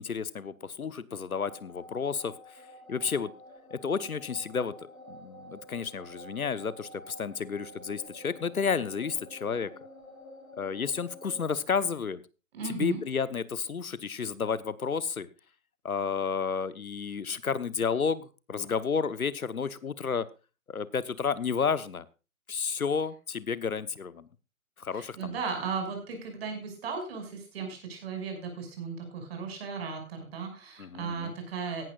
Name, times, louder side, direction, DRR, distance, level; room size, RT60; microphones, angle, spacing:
voice 1, 0.0-2.6 2.9-3.3 3.7-9.7 10.6-12.2 12.6-15.3 15.8-20.3 20.7-22.1 22.5-24.3 24.8-25.3 30.8-31.3, left 6 dB, 85° left, 16 dB, 1.1 m, -31 dB
sound 1, 1.4-11.6, equal, 70° left, 3.8 m, -49 dB
voice 2, 12.5-13.0 24.9-31.8, right 5 dB, 45° right, 4 dB, 6.3 m, -36 dB
17.0 x 12.0 x 2.4 m, 0.32 s
figure-of-eight pair, 135°, 42 cm